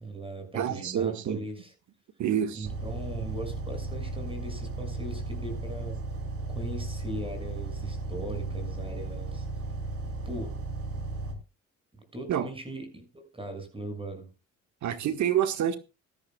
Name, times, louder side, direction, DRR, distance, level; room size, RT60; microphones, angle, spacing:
voice 1, 0.0-1.7 2.5-6.0 6.5-9.5 10.2-10.6 12.1-14.3, right 1 dB, 20° right, 6.3 m, -39 dB
voice 2, 0.5-1.4 2.2-2.7 12.3-12.5 14.8-15.8, right 9 dB, 70° right, 1.7 m, -27 dB
sound 1, 2.6-11.3, right 3 dB, 50° right, 3.6 m, -35 dB
18.5 x 13.5 x 2.4 m
cardioid pair, 90°, 30 cm